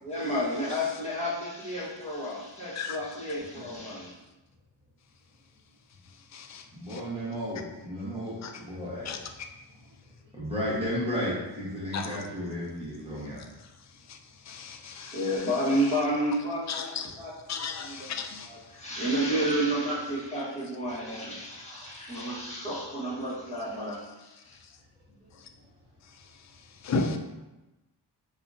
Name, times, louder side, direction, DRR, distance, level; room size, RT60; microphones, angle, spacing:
voice 1, 0.0-4.1 14.9-18.1 18.4-24.0, equal, 15° left, -8 dB, 1.4 m, -31 dB
voice 2, 6.7-9.2 10.3-13.4, equal, 15° right, -9 dB, 1.3 m, -33 dB
voice 3, 14.5-15.2 16.7-17.1 17.5-18.5 26.8-27.2, left 4 dB, 40° left, 6 dB, 0.4 m, -33 dB
4.8 x 2.4 x 2.6 m, 1.0 s
wide cardioid pair, 95°, 44 cm